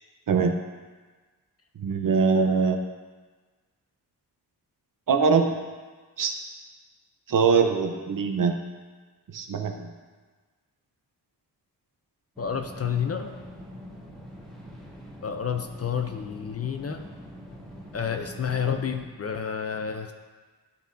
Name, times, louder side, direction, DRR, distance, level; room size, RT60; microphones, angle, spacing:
voice 1, 1.8-2.8 5.1-5.5 6.2-6.3 7.3-8.5 9.3-9.9, right 5 dB, 50° right, 4 dB, 0.7 m, -22 dB
voice 2, 12.4-13.3 15.2-17.0 17.9-20.1, left 7 dB, 40° left, 6 dB, 0.4 m, -30 dB
sound 1, 12.4-19.0, equal, ahead, 1.6 m, -44 dB
11.5 x 5.3 x 2.6 m, 1.4 s
wide cardioid pair, 130°, 41 cm